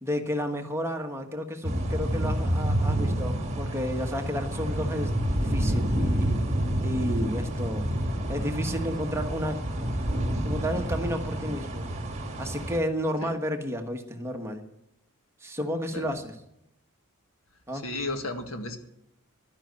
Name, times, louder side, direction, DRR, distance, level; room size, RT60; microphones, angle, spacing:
voice 1, 0.0-6.5 6.8-7.9 8.3-9.6 10.4-11.9 12.4-14.6 15.4-16.3 17.7-17.9, equal, 10° right, 4 dB, 1.2 m, -32 dB
sound 1, 1.6-12.8, right 1 dB, 30° right, 1.8 m, -28 dB
voice 2, 17.7-18.8, left 2 dB, 70° left, 6 dB, 1.8 m, -34 dB
11.5 x 10.5 x 8.1 m, 0.80 s
head